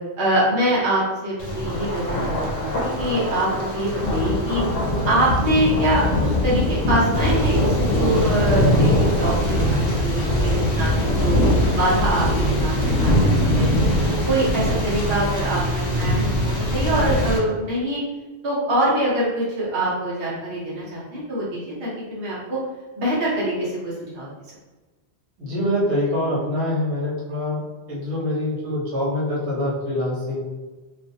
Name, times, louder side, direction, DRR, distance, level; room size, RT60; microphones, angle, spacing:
voice 1, 0.2-4.6 5.0-11.4 11.7-13.7 14.1-18.0 18.4-22.6 23.0-24.3, right 1 dB, 70° right, -8 dB, 1.0 m, -24 dB
Thunder, 1.4-17.4, left 1 dB, 70° left, 0.8 m, -22 dB
sound 1, 8.2-16.1, right 1 dB, 10° left, 1.0 m, -29 dB
voice 2, 25.4-27.6 27.9-30.5, left 1 dB, 90° right, -7 dB, 1.2 m, -24 dB
2.4 x 2.4 x 2.6 m, 1.2 s
omnidirectional pair, 1.1 m